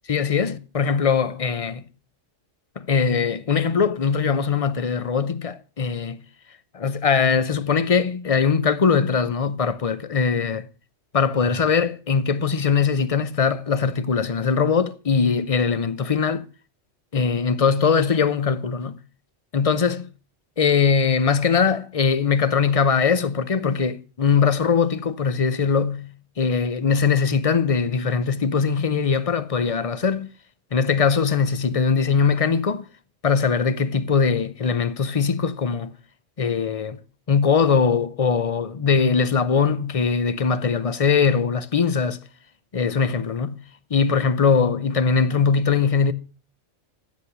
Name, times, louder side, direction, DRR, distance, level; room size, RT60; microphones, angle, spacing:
voice 1, 0.1-1.8 2.8-6.2 6.7-10.7 11.1-16.4 17.1-19.0 19.5-20.1 20.6-26.1 26.4-30.3 30.7-32.9 33.2-35.9 36.4-37.0 37.3-42.2 42.7-43.6 43.9-46.1, left 5 dB, 35° left, 0.7 m, -21 dB
13.5 x 8.3 x 5.9 m
omnidirectional pair, 1.3 m